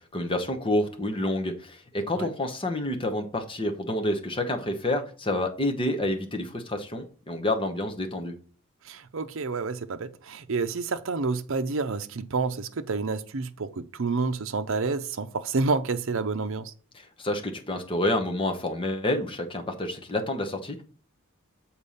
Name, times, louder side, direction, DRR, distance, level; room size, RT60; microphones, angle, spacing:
voice 1, 0.1-8.3 16.9-20.8, left 1 dB, 25° left, 1.1 m, -28 dB
voice 2, 8.9-16.7, right 4 dB, 60° right, 0.6 m, -29 dB
6.9 x 4.4 x 5.6 m
head